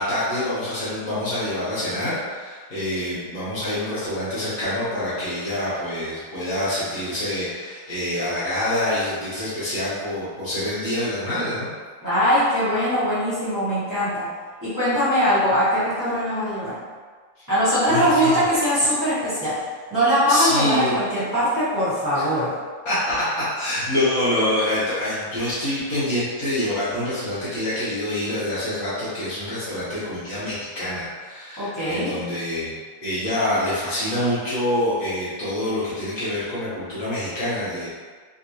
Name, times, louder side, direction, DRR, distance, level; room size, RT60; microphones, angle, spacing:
voice 1, 0.0-11.7 17.4-17.5 17.9-18.4 20.3-21.0 22.1-22.2 22.8-32.7 33.0-37.9, left 1 dB, 55° left, -10 dB, 1.0 m, -26 dB
voice 2, 12.0-14.3 14.6-16.8 17.5-19.6 19.9-22.5 31.6-32.2, equal, 15° right, -14 dB, 0.8 m, -21 dB
3.4 x 2.9 x 2.6 m, 1.5 s
omnidirectional pair, 2.4 m